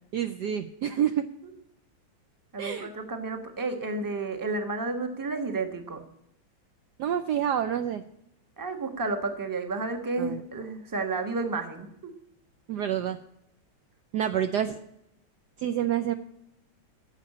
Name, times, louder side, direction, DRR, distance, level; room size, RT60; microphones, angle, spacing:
voice 1, 0.1-1.3 2.6-2.9 7.0-8.0 10.2-10.4 12.7-13.2 14.1-14.8 15.6-16.1, right 9 dB, 70° right, 9 dB, 1.0 m, -28 dB
voice 2, 2.5-6.0 8.6-12.1, right 3 dB, 15° right, 6 dB, 1.0 m, -31 dB
10.5 x 7.3 x 8.3 m, 0.80 s
omnidirectional pair, 2.2 m